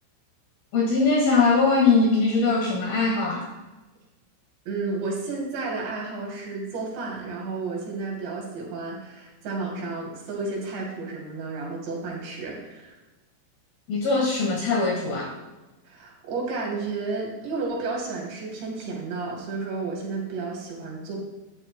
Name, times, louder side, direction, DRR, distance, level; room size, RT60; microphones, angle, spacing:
voice 1, 0.7-3.5 13.9-15.3, left 4 dB, 60° left, -1 dB, 2.9 m, -21 dB
voice 2, 4.7-12.9 15.8-21.2, right 3 dB, 60° right, -3 dB, 4.9 m, -32 dB
13.0 x 11.5 x 2.2 m, 1.1 s
omnidirectional pair, 5.9 m